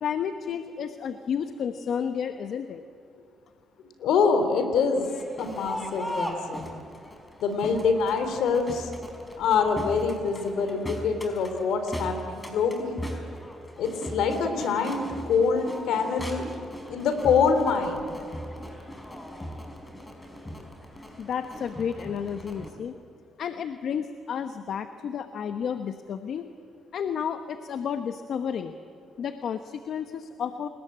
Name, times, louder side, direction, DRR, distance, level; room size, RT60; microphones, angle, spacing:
voice 1, 0.0-2.8 21.2-22.9 23.4-26.5 26.9-28.7 29.2-30.7, left 7 dB, 65° left, 8 dB, 1.1 m, -31 dB
voice 2, 4.0-5.0 5.4-6.7 7.4-8.9 9.4-13.0 13.8-16.4 16.9-18.1, left 5 dB, 80° left, 7 dB, 3.6 m, -25 dB
Crowd, 4.9-22.7, equal, 15° left, 5.1 m, -39 dB
29.0 x 20.5 x 8.8 m, 2.5 s
cardioid pair, 90°, 0 cm